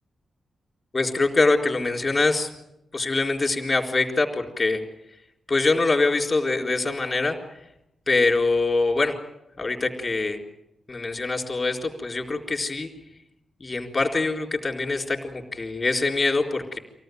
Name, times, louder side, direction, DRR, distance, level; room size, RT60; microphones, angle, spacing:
voice 1, 0.9-2.5 2.9-4.8 5.5-7.4 8.1-9.2 9.6-10.4 10.9-12.9 13.6-16.8, left 3 dB, 20° left, 2 dB, 4.0 m, -24 dB
26.0 x 18.0 x 9.3 m, 0.87 s
wide cardioid pair, 150°, 0 cm